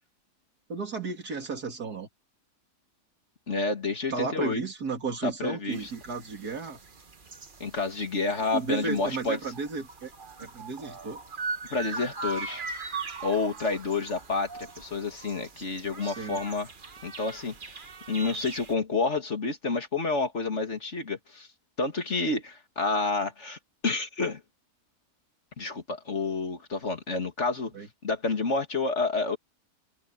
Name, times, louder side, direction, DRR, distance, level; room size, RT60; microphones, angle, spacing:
voice 1, 0.7-2.1 4.1-6.8 8.5-10.1 10.4-11.2 16.0-16.4 27.7-27.9, right 4 dB, 80° right, 3.3 m, -33 dB
voice 2, 3.5-4.6 5.2-5.9 7.6-9.4 11.7-12.7 13.2-14.5 14.8-16.7 17.0-17.8 18.1-21.5 21.8-24.4 25.6-27.7 28.0-29.4, left 3 dB, 50° left, 2.5 m, -29 dB
sound 1, 5.7-18.7, right 4 dB, 35° right, 1.3 m, -40 dB
omnidirectional pair, 1.6 m